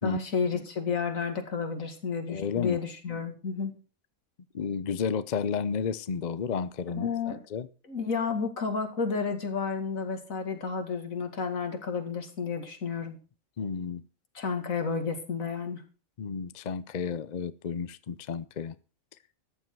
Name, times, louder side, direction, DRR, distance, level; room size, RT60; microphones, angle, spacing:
voice 1, 0.0-3.7 6.9-7.4 7.9-13.2 14.3-15.8, left 5 dB, 75° left, 2.5 m, -31 dB
voice 2, 2.3-2.8 4.5-7.7 13.6-14.0 16.2-18.8, left 6 dB, 45° left, 0.6 m, -32 dB
14.0 x 9.9 x 4.7 m
omnidirectional pair, 1.5 m